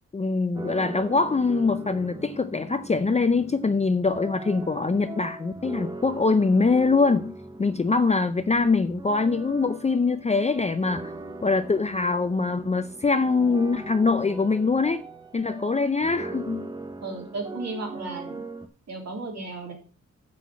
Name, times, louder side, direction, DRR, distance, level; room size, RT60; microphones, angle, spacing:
voice 1, 0.1-7.3 7.6-11.1 11.4-15.1 15.3-16.7, left 4 dB, 25° left, 0.5 m, -23 dB
sound 1, 0.6-18.7, right 2 dB, 15° right, 0.9 m, -40 dB
voice 2, 17.0-18.4 18.9-19.7, right 3 dB, 60° right, 3.5 m, -34 dB
7.6 x 6.0 x 7.3 m
wide cardioid pair, 115°, 30 cm